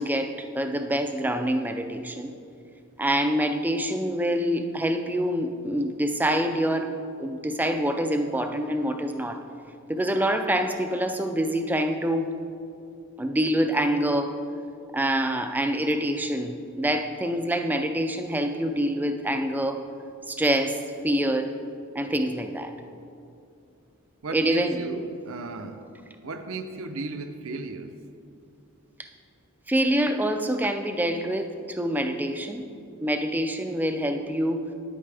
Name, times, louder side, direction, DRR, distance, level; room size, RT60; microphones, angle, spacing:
voice 1, 0.0-2.3 3.0-6.9 7.2-9.4 9.9-12.3 13.2-14.4 14.9-19.8 20.3-20.8 21.0-21.5 21.9-22.7 24.3-24.8 29.7-32.6 33.0-34.6, right 1 dB, 10° right, 6 dB, 0.4 m, -26 dB
voice 2, 24.2-25.9 26.2-27.9, right 3 dB, 65° right, 8 dB, 0.6 m, -35 dB
10.0 x 8.6 x 3.4 m, 2.5 s
head